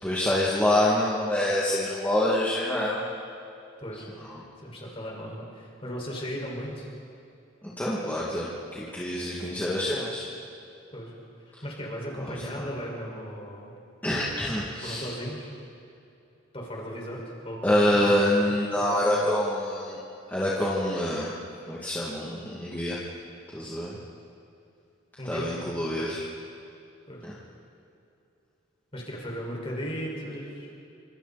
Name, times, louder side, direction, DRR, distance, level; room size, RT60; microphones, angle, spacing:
voice 1, 0.0-3.1 7.6-10.3 12.2-12.6 14.0-15.1 17.6-20.0 20.3-21.3 21.7-23.0 23.5-24.0 25.2-26.2 27.2-27.3, left 1 dB, 10° left, -7 dB, 2.5 m, -26 dB
voice 2, 4.6-6.9 10.9-11.1 11.4-13.7 14.8-15.5 16.5-19.3 25.2-25.5 26.0-26.2 27.1-27.3 28.9-30.7, equal, 30° left, -2 dB, 5.6 m, -36 dB
29.5 x 26.5 x 4.4 m, 2.7 s
head